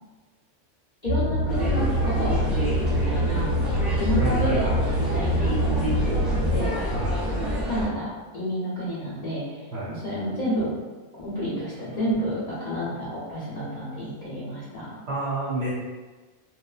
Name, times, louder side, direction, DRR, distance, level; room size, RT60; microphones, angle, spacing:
voice 1, 1.0-6.7 7.2-9.6 9.9-10.7 11.2-15.0, equal, 45° left, -11 dB, 0.6 m, -30 dB
sound 1, 1.1-6.6, equal, 85° right, 1.1 m, -25 dB
sound 2, 1.5-7.9, equal, ahead, 0.4 m, -28 dB
voice 2, 4.2-4.7 6.9-7.3 9.7-9.9 11.2-11.6 11.9-12.0 13.6-13.7 14.2-14.6 15.1-15.7, right 1 dB, 65° right, -8 dB, 0.8 m, -31 dB
3.2 x 2.0 x 2.3 m, 1.3 s
omnidirectional pair, 1.5 m